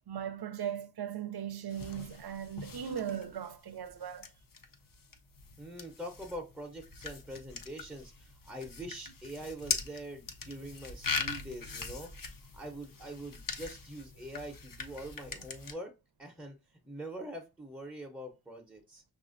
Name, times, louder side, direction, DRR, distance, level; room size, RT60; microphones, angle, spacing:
voice 1, 0.1-4.3, right 9 dB, 85° right, 0.5 m, -38 dB
sound 1, 1.7-15.7, left 5 dB, 60° left, 0.6 m, -41 dB
voice 2, 5.6-12.1 12.5-15.9 16.2-16.6 16.8-19.0, right 1 dB, 5° right, 0.6 m, -44 dB
5.6 x 2.5 x 2.5 m
wide cardioid pair, 40°, 37 cm